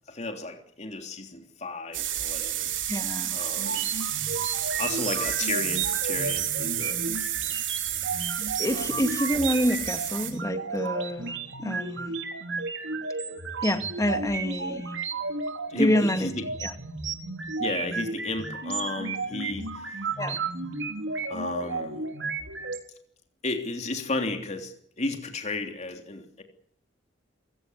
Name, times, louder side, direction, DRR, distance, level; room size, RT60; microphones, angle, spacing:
voice 1, 0.1-2.7 3.3-4.0 4.8-7.0 8.6-9.1 15.7-16.5 17.6-20.1 21.3-22.1 23.4-26.4, left 2 dB, 35° left, 5 dB, 3.3 m, -33 dB
sound 1, 1.9-10.3, right 12 dB, 90° right, 4.5 m, -30 dB
voice 2, 2.9-3.4 8.6-12.2 13.6-14.9 15.8-16.3 16.6-16.7 20.2-20.4, left 1 dB, 15° left, 7 dB, 2.3 m, -27 dB
sound 2, 3.6-22.8, right 4 dB, 70° right, 4.1 m, -33 dB
26.5 x 17.0 x 8.3 m, 0.67 s
head